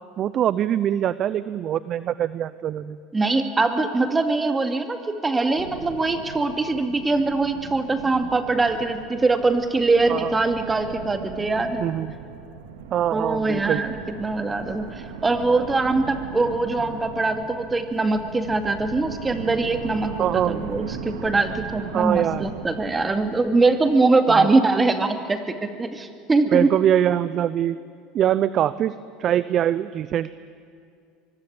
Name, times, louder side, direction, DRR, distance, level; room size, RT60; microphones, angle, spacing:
voice 1, 0.2-3.0 10.1-10.3 11.8-12.1 12.9-13.8 20.2-20.6 21.9-22.5 24.3-24.5 26.5-27.8 28.1-30.3, right 10 dB, 45° right, 16 dB, 0.6 m, -23 dB
voice 2, 3.1-11.8 13.1-26.7, right 3 dB, 15° right, 7 dB, 2.4 m, -22 dB
sound 1, 5.5-24.0, right 6 dB, 90° right, 2.3 m, -38 dB
24.0 x 23.0 x 8.9 m, 2.4 s
supercardioid pair, 110°, 0 cm